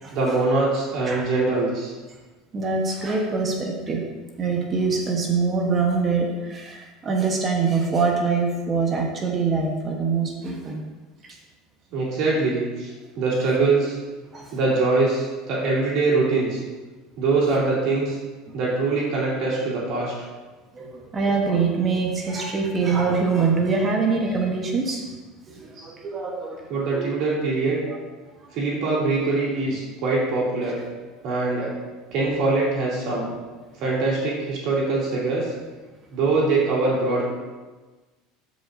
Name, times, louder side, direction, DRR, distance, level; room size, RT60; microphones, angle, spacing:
voice 1, 0.1-1.9 11.9-12.9 13.2-14.0 14.5-16.6 17.2-18.2 18.5-20.1 25.8-25.9 26.7-27.8 28.5-30.8 31.2-31.7 32.1-33.3 33.8-35.5 36.1-37.2, right 3 dB, 55° right, -5 dB, 2.5 m, -23 dB
voice 2, 2.5-4.0 4.4-10.8 11.2-11.4 14.3-14.6 18.5-18.6 20.7-25.1 25.5-26.7 26.9-27.1 27.9-28.0, right 4 dB, 30° right, 1 dB, 1.0 m, -24 dB
12.0 x 5.1 x 2.6 m, 1.3 s
supercardioid pair, 125°, 0 cm